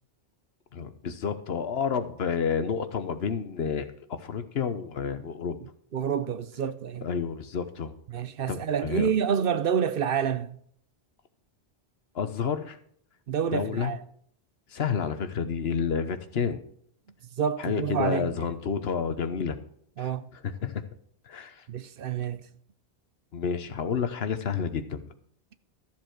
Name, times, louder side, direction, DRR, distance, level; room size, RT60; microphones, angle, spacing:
voice 1, 0.7-5.6 7.0-7.9 8.5-9.1 12.1-12.8 13.5-13.9 14.7-16.6 17.6-19.6 20.0-20.1 20.4-20.8 21.3-21.6 23.3-25.1, left 6 dB, 75° left, 1.2 m, -30 dB
voice 2, 5.6-7.0 8.1-10.6 13.3-14.0 17.4-18.3 20.0-20.2 21.7-22.4, right 7 dB, 65° right, 0.8 m, -28 dB
13.5 x 7.5 x 4.6 m
omnidirectional pair, 1.1 m